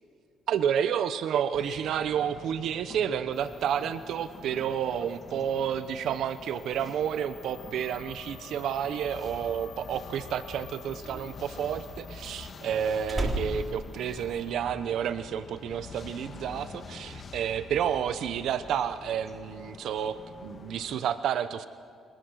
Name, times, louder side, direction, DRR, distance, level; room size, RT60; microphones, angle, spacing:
voice 1, 0.5-21.7, right 8 dB, 70° right, 11 dB, 0.9 m, -30 dB
sound 1, 1.5-21.0, left 5 dB, 40° left, 1.6 m, -46 dB
sound 2, 3.3-14.5, left 7 dB, 70° left, 4.3 m, -52 dB
Slam, 10.8-14.9 15.2-15.6, right 1 dB, 20° right, 3.8 m, -35 dB
30.0 x 25.0 x 6.4 m, 2.2 s
cardioid pair, 135°, 0 cm